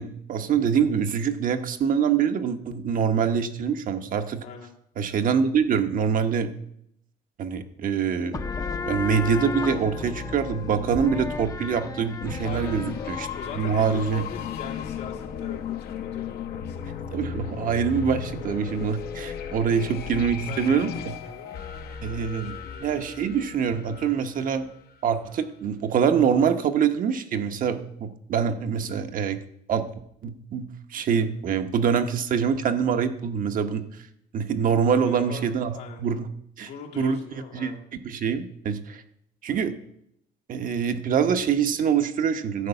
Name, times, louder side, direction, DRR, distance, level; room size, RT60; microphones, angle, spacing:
voice 1, 0.0-4.4 5.0-6.5 7.4-8.5 8.9-13.3 13.6-14.2 17.1-21.2 22.0-22.5 22.8-24.7 25.0-29.4 29.7-29.9 30.2-30.7 30.9-33.8 34.3-35.7 36.0-36.3 36.6-36.7 37.0-37.2 37.5-37.7 38.0-39.0 39.4-39.8 40.5-42.7, right 7 dB, 55° right, 7 dB, 0.9 m, -25 dB
sound 1, 8.3-15.6, left 5 dB, 20° left, 0.6 m, -34 dB
sound 2, 12.2-24.9, left 7 dB, 65° left, 1.0 m, -35 dB
voice 2, 12.4-12.8 13.2-16.9 19.7-20.1 20.5-23.0 35.0-36.0 36.7-37.8, left 6 dB, 85° left, -2 dB, 2.3 m, -42 dB
11.0 x 4.6 x 8.0 m, 0.73 s
cardioid pair, 110°, 17 cm